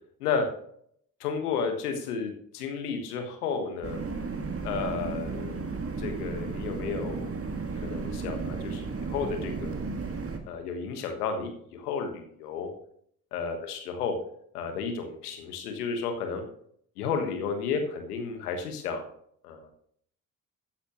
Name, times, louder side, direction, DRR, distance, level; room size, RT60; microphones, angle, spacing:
voice 1, 1.2-4.0 4.6-5.6 6.0-9.7 10.4-12.7 13.3-14.2 14.5-16.4 17.0-19.1 19.4-19.6, left 5 dB, 85° left, 5 dB, 1.5 m, -32 dB
sound 1, 3.8-10.4, right 4 dB, 30° right, 1.9 m, -34 dB
13.5 x 9.9 x 3.0 m, 0.67 s
hypercardioid pair, 45°, 44 cm